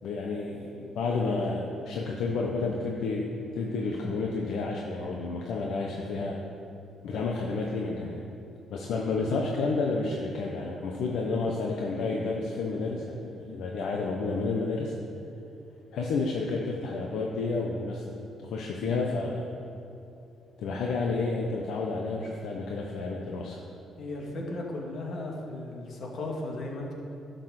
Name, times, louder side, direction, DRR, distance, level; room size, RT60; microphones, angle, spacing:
voice 1, 0.0-6.4 7.0-8.2 8.7-14.9 15.9-19.5 20.6-23.6, left 3 dB, 80° left, -1 dB, 1.0 m, -30 dB
voice 2, 24.0-26.9, left 2 dB, 60° left, -1 dB, 2.3 m, -36 dB
12.0 x 6.6 x 6.6 m, 2.7 s
cardioid pair, 90°, 0 cm